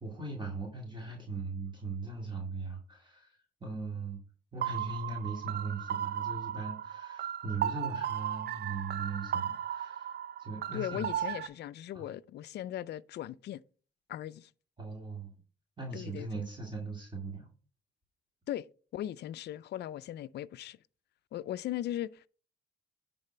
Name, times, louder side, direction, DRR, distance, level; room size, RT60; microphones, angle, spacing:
voice 1, 0.0-4.2 4.5-11.1 11.9-12.1 14.8-15.3 15.8-17.5, right 3 dB, 25° right, 2.1 m, -39 dB
sound 1, 4.6-11.5, right 10 dB, 55° right, 0.6 m, -36 dB
voice 2, 10.7-13.6 14.1-14.5 15.9-16.3 18.5-18.7 18.9-20.8 21.3-22.3, left 12 dB, 60° left, 0.4 m, -38 dB
10.5 x 4.1 x 4.4 m
cardioid pair, 90°, 20 cm